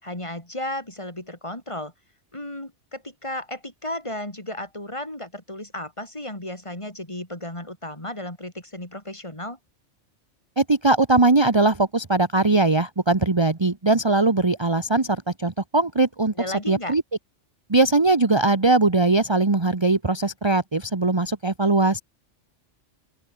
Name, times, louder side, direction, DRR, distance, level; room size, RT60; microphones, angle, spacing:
voice 1, 0.0-1.9 2.3-9.6 16.4-17.0, left 1 dB, 25° left, 3.9 m, -34 dB
voice 2, 10.6-16.3 16.7-17.0 17.7-22.0, right 2 dB, 20° right, 1.3 m, -20 dB
open air
omnidirectional pair, 1.3 m